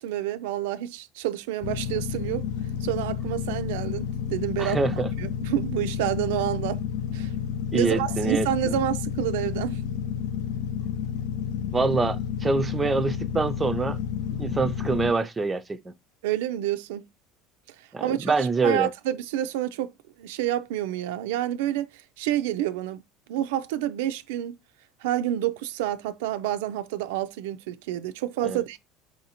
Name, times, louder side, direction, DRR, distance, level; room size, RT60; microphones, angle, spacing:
voice 1, 0.0-2.4 2.8-4.8 5.2-6.8 7.1-7.3 7.7-9.8 16.2-17.0 18.0-19.9 20.2-21.9 22.2-23.0 23.3-24.6 25.0-28.8, right 12 dB, 90° right, 0.3 m, -28 dB
sound 1, 1.6-15.1, left 8 dB, 80° left, 0.4 m, -30 dB
voice 2, 4.6-5.1 7.7-8.8 11.7-14.0 14.4-15.9 17.9-18.9 28.4-28.6, right 4 dB, 15° right, 0.4 m, -25 dB
4.7 x 2.6 x 2.8 m
supercardioid pair, 125°, 0 cm